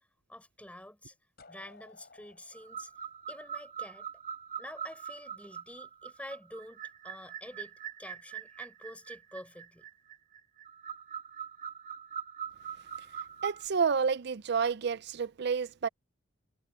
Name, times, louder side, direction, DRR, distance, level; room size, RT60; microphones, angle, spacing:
voice 1, 0.3-1.1 1.5-2.9 3.3-4.1 4.6-9.9, left 1 dB, 5° left, 6.7 m, -48 dB
sound 1, 1.4-4.2, left 3 dB, 50° left, 6.1 m, -58 dB
sound 2, 2.5-13.7, right 8 dB, 40° right, 1.5 m, -43 dB
voice 2, 13.4-15.9, right 6 dB, 55° right, 0.5 m, -29 dB
head